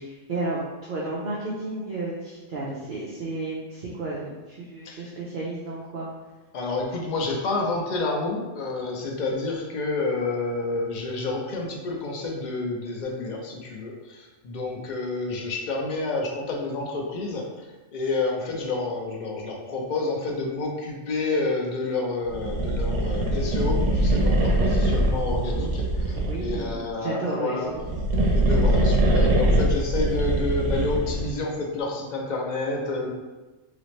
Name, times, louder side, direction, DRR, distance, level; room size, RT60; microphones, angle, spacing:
voice 1, 0.0-6.1 26.1-27.8, right 2 dB, 55° right, -5 dB, 0.6 m, -32 dB
voice 2, 6.5-27.7 28.3-33.1, left 3 dB, 50° left, 0 dB, 0.6 m, -29 dB
sound 1, 22.3-26.8 27.7-31.4, right 1 dB, 75° right, 1.1 m, -23 dB
3.2 x 2.9 x 3.1 m, 1.2 s
omnidirectional pair, 1.3 m